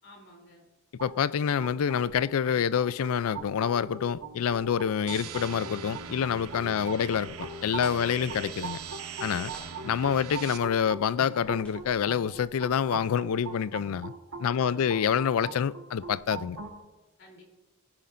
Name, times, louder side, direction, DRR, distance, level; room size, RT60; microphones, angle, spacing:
voice 1, 0.0-0.6 6.7-7.1 14.4-14.9 17.2-17.4, left 1 dB, 55° left, 3.3 m, -52 dB
voice 2, 1.0-8.8 9.2-9.5 9.8-14.1 14.4-16.6, left 7 dB, 70° left, 0.4 m, -27 dB
sound 1, 1.0-16.8, right 4 dB, 65° right, 1.6 m, -42 dB
sound 2, 5.1-10.6, right 7 dB, 85° right, 0.8 m, -42 dB
sound 3, 7.7-13.3 13.6-13.7 14.1-14.3 14.6-14.7, equal, 5° left, 3.9 m, -52 dB
19.0 x 11.0 x 2.6 m
head